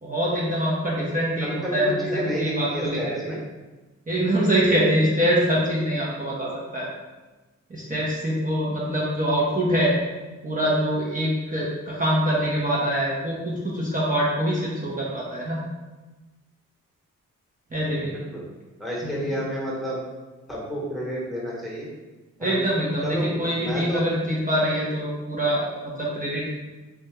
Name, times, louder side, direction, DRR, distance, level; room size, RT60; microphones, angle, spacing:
voice 1, 0.0-3.2 4.1-6.9 7.7-9.9 10.4-15.6 17.7-18.2 19.0-19.3 22.4-26.5, equal, 25° right, -6 dB, 0.7 m, -24 dB
voice 2, 1.4-3.4 18.1-18.4 18.8-20.0 20.5-21.9 22.4-22.6 23.0-24.0, equal, ahead, -5 dB, 1.1 m, -30 dB
2.6 x 2.3 x 3.1 m, 1.2 s
supercardioid pair, 50°, 32 cm